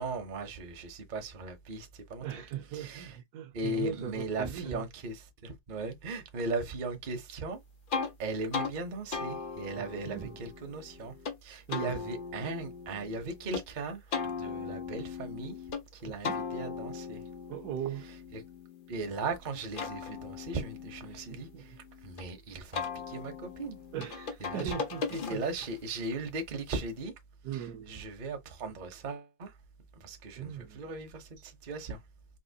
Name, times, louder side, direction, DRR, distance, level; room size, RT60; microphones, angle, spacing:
voice 1, 0.0-2.3 2.7-3.2 3.5-7.6 8.2-11.1 11.4-15.5 15.9-17.2 18.0-18.4 18.9-21.8 22.0-23.8 24.4-24.8 25.1-27.1 27.5-29.5 30.0-32.0, right 3 dB, 40° right, 0.7 m, -38 dB
voice 2, 2.2-4.8 9.8-10.4 11.7-12.0 16.1-16.5 17.5-18.1 21.1-21.7 23.9-25.4 27.4-28.1 30.4-30.8, right 10 dB, 70° right, 1.1 m, -39 dB
sound 1, 7.9-8.1 8.5-8.7 9.1-11.4 11.7-13.6 14.1-15.8 16.2-19.1 19.5-22.2 22.7-25.7, left 5 dB, 75° left, 0.4 m, -38 dB
4.1 x 2.9 x 2.7 m
omnidirectional pair, 1.9 m